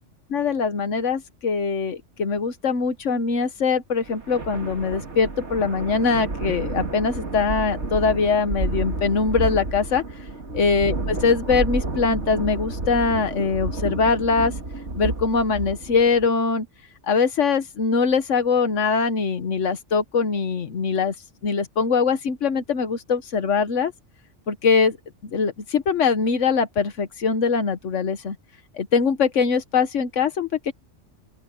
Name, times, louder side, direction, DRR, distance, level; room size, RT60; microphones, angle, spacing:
voice 1, 0.3-10.0 10.5-14.5 15.0-16.7 17.1-21.1 21.4-23.9 24.5-25.0 25.3-28.4 28.7-30.7, left 5 dB, 85° left, 1.5 m, -22 dB
sound 1, 4.1-16.3, right 2 dB, 70° right, 2.8 m, -30 dB
open air
omnidirectional pair, 1.2 m